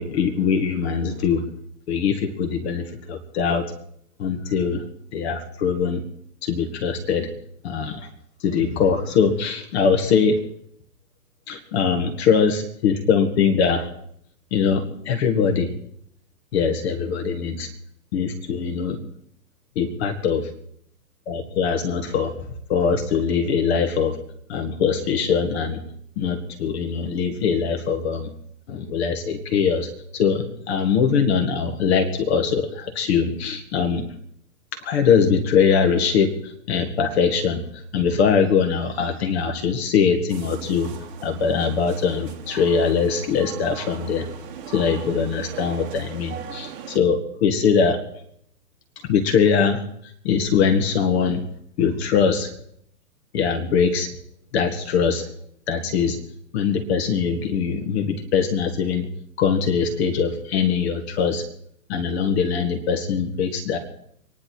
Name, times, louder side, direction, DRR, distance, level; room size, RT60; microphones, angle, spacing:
voice 1, 0.0-1.5 1.9-3.7 4.2-4.8 5.1-6.0 6.4-7.3 7.6-8.1 8.4-10.4 11.5-13.9 14.5-15.7 16.5-17.7 18.1-19.0 19.8-20.4 21.3-22.4 22.7-24.2 24.5-25.8 26.2-28.3 28.7-34.1 34.8-40.9 41.2-44.3 44.7-48.0 49.0-51.4 51.8-52.5 53.3-54.1 54.5-55.3 55.7-56.2 56.5-59.1 59.4-61.5 61.9-63.8, left 6 dB, 40° left, 6 dB, 1.9 m, -22 dB
sound 1, 40.3-47.0, right 8 dB, 35° right, 2.1 m, -39 dB
26.0 x 10.5 x 4.6 m, 0.70 s
hypercardioid pair, 135°, 47 cm